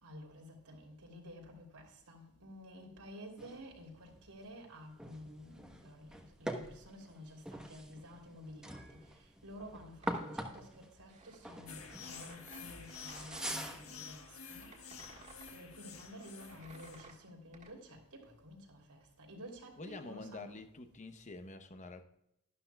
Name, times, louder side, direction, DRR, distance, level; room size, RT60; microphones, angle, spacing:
voice 1, 0.0-14.7 15.5-20.5, equal, 90° right, 1 dB, 3.1 m, -52 dB
sound 1, 3.4-14.1, right 1 dB, 5° right, 1.0 m, -45 dB
sound 2, 10.0-13.7 14.2-17.7, right 3 dB, 35° right, 1.7 m, -57 dB
sound 3, 11.7-17.1, left 6 dB, 65° left, 1.5 m, -50 dB
voice 2, 19.8-22.0, left 3 dB, 35° left, 8 dB, 0.8 m, -47 dB
12.0 x 12.0 x 2.3 m, 0.81 s
head